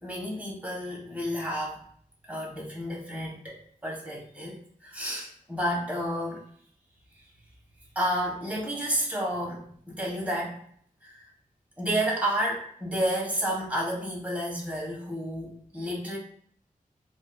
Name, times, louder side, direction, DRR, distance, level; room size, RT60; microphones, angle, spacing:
voice 1, 0.0-1.8 2.3-6.4 7.9-10.6 11.0-11.3 11.8-16.2, equal, 10° right, -4 dB, 1.5 m, -31 dB
4.9 x 2.6 x 2.3 m, 0.62 s
wide cardioid pair, 90°, 15 cm